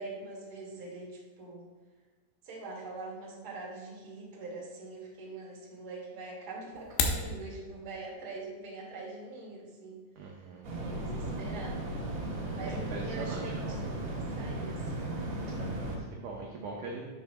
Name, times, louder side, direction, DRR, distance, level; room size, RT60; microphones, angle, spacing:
voice 1, 0.0-1.6 2.4-10.0 10.8-11.9 12.5-15.1, right 3 dB, 35° right, -4 dB, 1.7 m, -43 dB
sound 1, 6.7-7.3, left 4 dB, 90° left, 2.9 m, -29 dB
voice 2, 10.2-10.7 12.7-14.0 15.5-17.1, right 3 dB, 75° right, -1 dB, 1.8 m, -41 dB
sound 2, 10.6-16.0, right 1 dB, 55° right, 2.5 m, -36 dB
10.5 x 7.3 x 2.2 m, 1.4 s
omnidirectional pair, 4.5 m